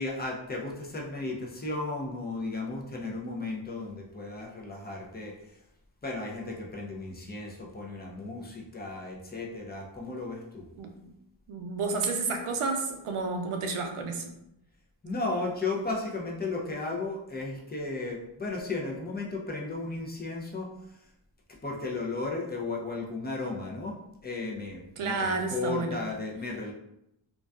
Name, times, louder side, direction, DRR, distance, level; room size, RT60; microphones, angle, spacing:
voice 1, 0.0-5.3 6.0-10.7 15.0-20.7 21.6-24.0 24.2-26.7, left 3 dB, 20° left, -1 dB, 0.5 m, -34 dB
voice 2, 11.5-14.3 25.0-26.0, right 4 dB, 85° right, 4 dB, 0.6 m, -31 dB
2.5 x 2.2 x 2.2 m, 0.82 s
wide cardioid pair, 95°, 50 cm